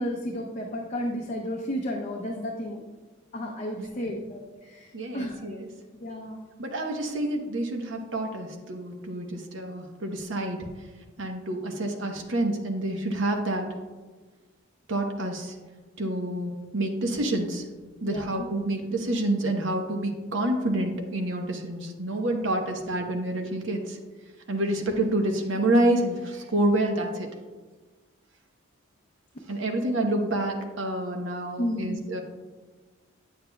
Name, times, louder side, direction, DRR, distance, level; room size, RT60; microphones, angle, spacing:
voice 1, 0.0-2.8 3.3-5.5 6.0-6.4 18.0-18.5 18.9-19.0 31.6-32.1, equal, 35° left, -1 dB, 0.6 m, -33 dB
voice 2, 4.9-5.7 6.6-10.6 11.2-13.7 14.9-15.5 16.0-17.6 18.0-24.0 24.5-27.3 29.5-32.2, right 1 dB, 65° right, 3 dB, 0.9 m, -28 dB
8.4 x 7.2 x 2.2 m, 1.3 s
head